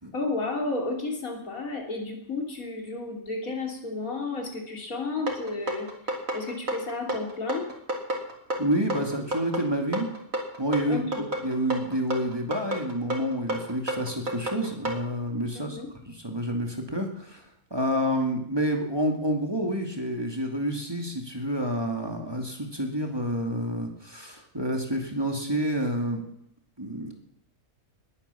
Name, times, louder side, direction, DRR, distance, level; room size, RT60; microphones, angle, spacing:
voice 1, 0.1-5.9 6.3-7.7 10.9-11.3 15.8-15.9, left 3 dB, 80° left, 2 dB, 3.6 m, -32 dB
sound 1, 5.3-15.0, right 1 dB, 75° right, 3.3 m, -31 dB
voice 2, 8.6-10.1 10.6-11.0 11.4-15.8 16.2-17.4 17.7-26.2 26.8-27.1, equal, 15° right, 2 dB, 2.5 m, -28 dB
20.5 x 10.0 x 7.1 m, 0.73 s
omnidirectional pair, 1.5 m